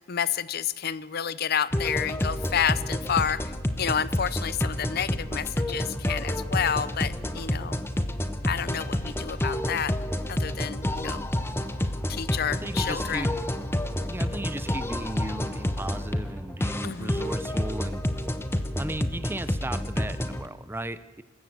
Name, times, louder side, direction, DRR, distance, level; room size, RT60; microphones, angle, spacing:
voice 1, 0.0-3.4 3.8-7.8 8.5-9.9 10.3-11.2 12.1-13.4 16.8-17.2, left 8 dB, 55° left, 18 dB, 0.6 m, -29 dB
sound 1, 1.7-20.5, left 1 dB, 15° left, 1.1 m, -29 dB
voice 2, 12.4-13.3 14.1-18.0 18.8-21.2, right 1 dB, 10° right, 14 dB, 0.7 m, -36 dB
25.5 x 14.5 x 7.7 m, 1.2 s
head